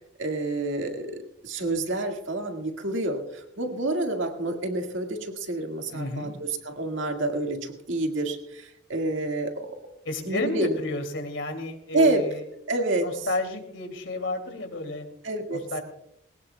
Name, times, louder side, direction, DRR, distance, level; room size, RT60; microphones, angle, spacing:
voice 1, 0.2-9.8 10.2-10.8 11.9-12.3 12.7-13.3 15.2-15.7, right 2 dB, 90° right, 4 dB, 1.9 m, -28 dB
voice 2, 5.9-6.3 10.0-12.4 13.0-15.1 15.5-15.8, left 2 dB, 80° left, 5 dB, 2.6 m, -32 dB
21.0 x 18.0 x 2.3 m, 0.78 s
head